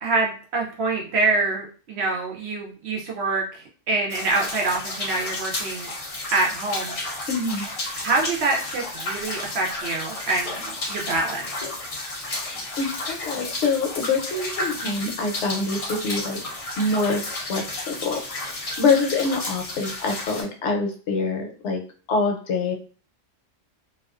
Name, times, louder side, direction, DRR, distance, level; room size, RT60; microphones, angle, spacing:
voice 1, 0.0-5.9 6.3-7.2 8.0-11.5, right 3 dB, 65° right, -1 dB, 0.7 m, -26 dB
sound 1, 4.1-20.4, left 2 dB, 50° left, 0.4 m, -32 dB
voice 2, 7.3-7.7 12.3-16.4 16.8-21.8 22.1-22.7, left 3 dB, 70° left, 2 dB, 0.9 m, -25 dB
2.3 x 2.2 x 2.3 m, 0.39 s
omnidirectional pair, 1.3 m